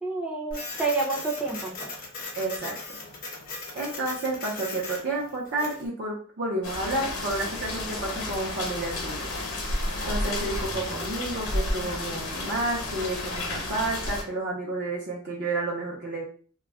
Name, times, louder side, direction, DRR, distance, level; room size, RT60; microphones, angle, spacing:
voice 1, 0.0-1.9, right 3 dB, 5° right, -3 dB, 0.5 m, -29 dB
Printer, 0.5-5.9, left 3 dB, 40° left, 0.7 m, -38 dB
voice 2, 2.4-3.0 3.7-9.3 10.1-16.2, right 2 dB, 50° right, -4 dB, 0.6 m, -31 dB
sound 1, 6.6-14.2, left 2 dB, 80° left, 0.7 m, -31 dB
2.3 x 2.0 x 3.4 m, 0.43 s
head